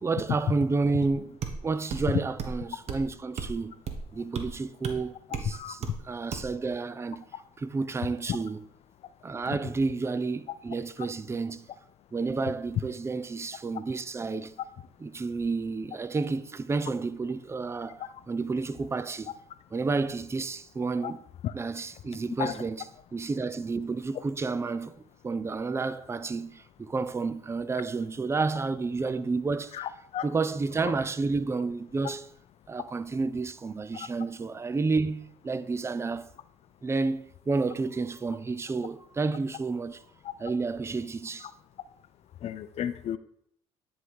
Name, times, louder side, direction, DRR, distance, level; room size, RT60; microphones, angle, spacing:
voice 1, 0.0-3.7 4.1-7.3 7.6-8.6 9.2-11.7 12.1-14.5 15.0-19.3 19.7-21.2 21.5-29.9 30.2-32.3 32.7-36.3 36.8-40.0 40.4-41.5, right 4 dB, 20° right, 0.5 m, -30 dB
sound 1, 1.4-1.6 1.9-2.1 2.4-2.6 2.9-3.0 3.4-3.5 3.9-4.0 4.3-4.5 4.8-5.0 5.3-5.5 5.8-6.0 6.3-6.5, right 6 dB, 55° right, 1.2 m, -34 dB
voice 2, 29.7-30.3 30.8-30.9 33.9-34.1 42.4-43.2, left 9 dB, 55° left, 0.5 m, -34 dB
9.9 x 3.6 x 4.8 m
supercardioid pair, 80°, 13 cm